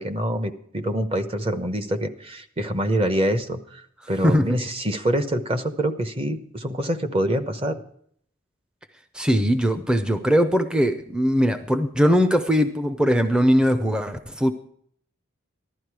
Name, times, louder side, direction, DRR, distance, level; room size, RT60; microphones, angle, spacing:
voice 1, 0.0-7.8, right 1 dB, 25° right, 1.0 m, -25 dB
voice 2, 9.1-14.5, equal, 5° right, 0.6 m, -20 dB
15.0 x 12.0 x 4.8 m
head